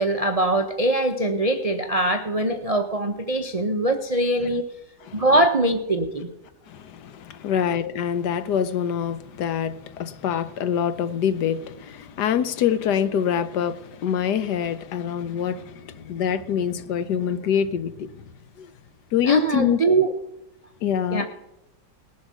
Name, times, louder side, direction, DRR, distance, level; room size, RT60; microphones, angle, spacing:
voice 1, 0.0-4.6 5.1-6.3 19.3-20.1 21.1-21.3, right 2 dB, 45° right, 0.5 m, -22 dB
voice 2, 6.7-18.2 18.6-18.7 19.1-19.8 20.8-21.3, left 8 dB, 75° left, 1.3 m, -25 dB
19.0 x 7.2 x 6.2 m
omnidirectional pair, 1.9 m